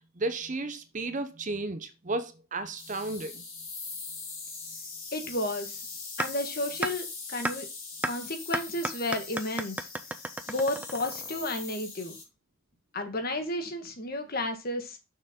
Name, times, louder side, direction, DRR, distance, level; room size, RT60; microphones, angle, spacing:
voice 1, 0.2-3.4, right 2 dB, 35° right, 0.8 m, -33 dB
sound 1, 2.8-12.2, left 4 dB, 75° left, 3.7 m, -41 dB
voice 2, 5.1-5.8 6.2-7.7 8.0-9.9 10.5-12.1 12.9-15.0, left 1 dB, 45° left, 1.5 m, -32 dB
sound 2, 6.2-6.3 6.8-6.9 7.4-7.5 8.0-8.1 8.5-11.5, right 1 dB, 5° right, 0.4 m, -31 dB
6.5 x 6.3 x 3.7 m
head